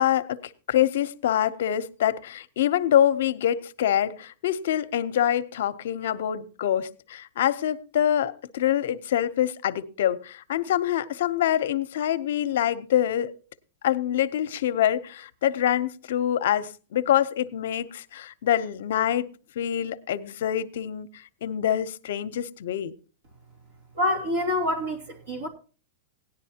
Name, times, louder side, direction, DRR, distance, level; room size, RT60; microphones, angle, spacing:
voice 1, 0.0-13.3 13.8-19.3 19.6-22.9, left 10 dB, 70° left, 0.7 m, -25 dB
voice 2, 24.0-25.5, left 1 dB, 80° right, 3.0 m, -26 dB
17.5 x 10.5 x 2.8 m
supercardioid pair, 155°, 0 cm